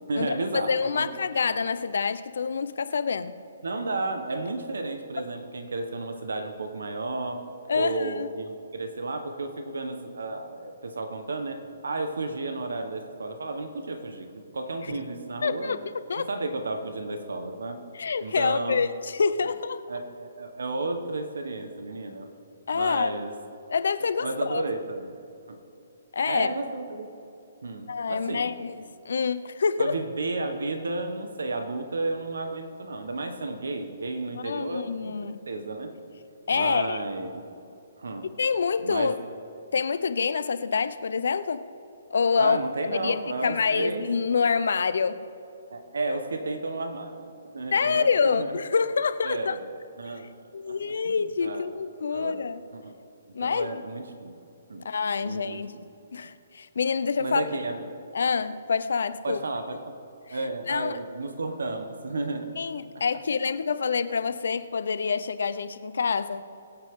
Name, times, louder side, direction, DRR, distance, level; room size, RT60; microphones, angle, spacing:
voice 1, 0.1-1.1 3.6-7.4 7.7-14.3 14.5-15.8 16.2-17.8 18.2-18.9 19.4-19.5 19.9-22.3 22.7-23.3 24.2-25.1 25.5-25.6 26.2-27.1 27.6-28.5 29.8-34.9 35.2-36.0 36.5-37.4 38.0-38.3 38.8-39.2 42.4-44.0 45.7-48.6 49.2-49.7 50.0-50.3 50.7-50.8 51.0-51.7 52.1-52.4 52.7-52.9 53.4-54.3 54.7-54.9 55.2-55.6 57.2-57.8 59.2-60.0 60.3-62.5, right 2 dB, 90° right, 6 dB, 1.3 m, -32 dB
voice 2, 0.7-3.3 7.7-8.3 15.4-15.8 16.1-16.3 17.9-19.8 22.7-23.1 23.7-24.6 26.1-26.5 27.9-29.9 34.4-35.4 36.5-37.0 38.4-39.1 39.7-41.6 42.1-42.6 42.9-43.2 43.4-45.2 47.7-49.6 50.5-52.6 53.3-53.8 54.8-55.7 56.1-57.4 58.1-59.4 60.7-61.0 62.6-66.4, left 5 dB, 75° left, 13 dB, 0.7 m, -26 dB
23.0 x 8.2 x 3.7 m, 2.7 s
hypercardioid pair, 160°, 0 cm